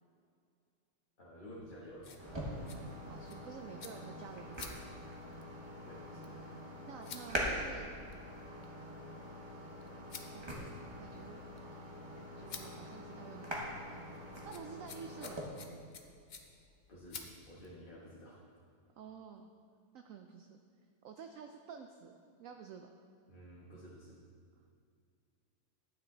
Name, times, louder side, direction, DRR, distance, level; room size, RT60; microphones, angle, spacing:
voice 1, 1.2-2.2 5.8-6.3 16.9-18.4 23.3-24.2, equal, 30° left, -6 dB, 1.3 m, -52 dB
sound 1, 1.6-17.8, left 5 dB, 85° left, 0.4 m, -55 dB
sound 2, 2.2-15.4, equal, 20° right, 1.2 m, -44 dB
voice 2, 3.1-4.8 6.9-7.9 10.3-11.4 12.2-15.7 19.0-19.5 19.9-20.6 21.0-22.1 22.4-22.9, right 7 dB, 70° right, 5 dB, 0.8 m, -51 dB
10.5 x 9.0 x 3.9 m, 2.3 s
omnidirectional pair, 1.8 m